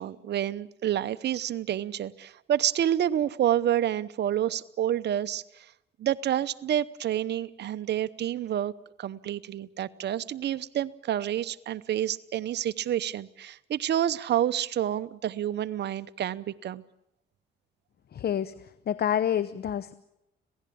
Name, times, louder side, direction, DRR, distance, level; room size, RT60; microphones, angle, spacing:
voice 1, 0.0-5.7 6.0-8.7 9.0-16.8, right 11 dB, 60° right, 0.8 m, -28 dB
voice 2, 18.1-18.5 18.9-19.9, left 9 dB, 55° left, 0.9 m, -27 dB
26.5 x 17.0 x 8.5 m
cardioid pair, 90°, 20 cm